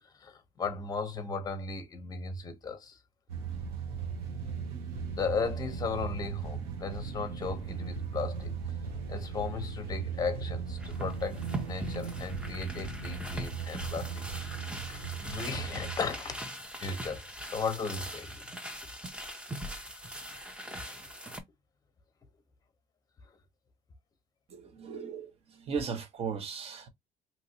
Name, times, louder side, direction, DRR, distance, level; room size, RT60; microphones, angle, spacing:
voice 1, 0.0-3.0 5.1-8.6 9.1-18.5 20.6-21.0, left 4 dB, 25° left, 0.7 m, -36 dB
sound 1, 3.3-16.0, right 6 dB, 85° right, 0.9 m, -38 dB
sound 2, 10.8-21.4, right 1 dB, 5° right, 0.5 m, -41 dB
voice 2, 24.5-26.9, right 6 dB, 45° right, 0.8 m, -37 dB
2.9 x 2.9 x 2.7 m
cardioid pair, 150°, 15 cm